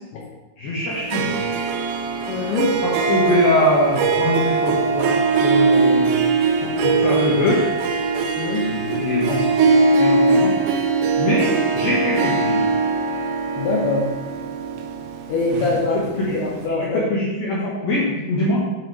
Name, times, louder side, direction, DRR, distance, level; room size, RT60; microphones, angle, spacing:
voice 1, 0.6-1.4 2.8-6.2 6.6-7.6 8.6-9.6 10.0-10.5 11.2-12.7 16.3-16.4 16.9-18.6, left 2 dB, 70° left, -6 dB, 2.3 m, -22 dB
Harp, 0.9-16.3, right 4 dB, 90° right, 2.5 m, -21 dB
voice 2, 2.3-2.7 8.4-8.7 13.6-14.1 15.3-17.0, left 3 dB, 85° left, -3 dB, 2.2 m, -23 dB
8.4 x 4.7 x 4.7 m, 1.2 s
omnidirectional pair, 5.9 m